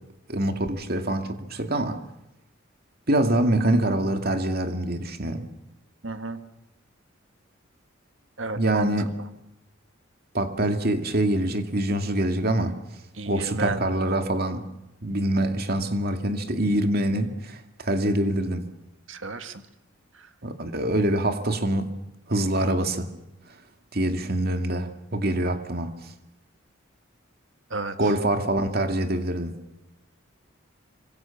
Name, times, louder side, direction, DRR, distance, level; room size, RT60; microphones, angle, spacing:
voice 1, 0.3-2.0 3.1-5.4 8.6-9.1 10.3-12.7 13.3-14.7 15.0-18.7 20.4-21.9 22.3-23.1 23.9-26.0 28.0-29.6, right 1 dB, 45° right, 2.4 m, -25 dB
voice 2, 6.0-6.4 8.4-8.9 9.2-9.3 13.1-13.8 19.1-19.7 20.1-20.3 27.7-28.1, right 3 dB, 65° right, 1.9 m, -32 dB
26.5 x 25.5 x 7.2 m
head